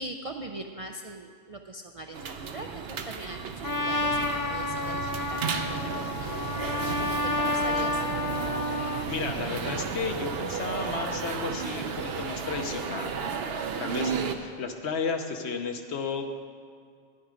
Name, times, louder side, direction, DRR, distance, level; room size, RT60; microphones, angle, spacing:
voice 1, 0.0-8.2, right 2 dB, 50° right, 3 dB, 0.4 m, -41 dB
sound 1, 2.1-14.3, right 6 dB, 65° right, 0.9 m, -33 dB
Trumpet, 3.6-9.1, left 2 dB, 25° left, 0.5 m, -30 dB
voice 2, 9.1-13.4 13.8-16.3, left 5 dB, 70° left, 5 dB, 1.1 m, -33 dB
11.0 x 10.0 x 5.0 m, 2.2 s
omnidirectional pair, 1.2 m